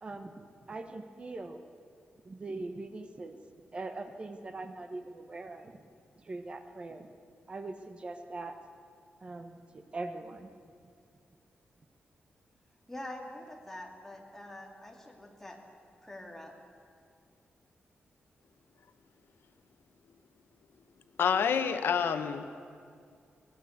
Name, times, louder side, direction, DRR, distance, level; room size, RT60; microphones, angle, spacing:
voice 1, 0.0-1.6 2.2-3.4 3.7-5.8 6.2-7.1 7.5-8.6 9.2-10.5, right 2 dB, 30° right, 7 dB, 1.3 m, -41 dB
voice 2, 12.9-15.6 16.0-16.5, left 1 dB, 10° left, 0 dB, 2.9 m, -45 dB
voice 3, 21.2-22.6, left 7 dB, 80° left, 9 dB, 1.2 m, -28 dB
23.5 x 18.5 x 8.2 m, 2.3 s
wide cardioid pair, 170°, 4 cm